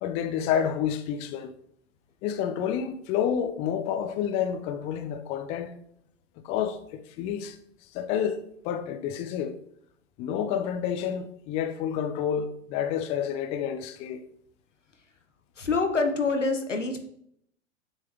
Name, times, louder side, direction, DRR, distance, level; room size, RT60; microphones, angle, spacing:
voice 1, 0.0-1.5 2.2-5.7 6.4-7.6 7.9-8.4 8.6-9.5 10.2-14.2, left 8 dB, 20° left, 0.3 m, -29 dB
voice 2, 15.6-17.0, left 3 dB, 85° left, 1.0 m, -26 dB
7.2 x 3.9 x 3.4 m
figure-of-eight pair, 95°, 36 cm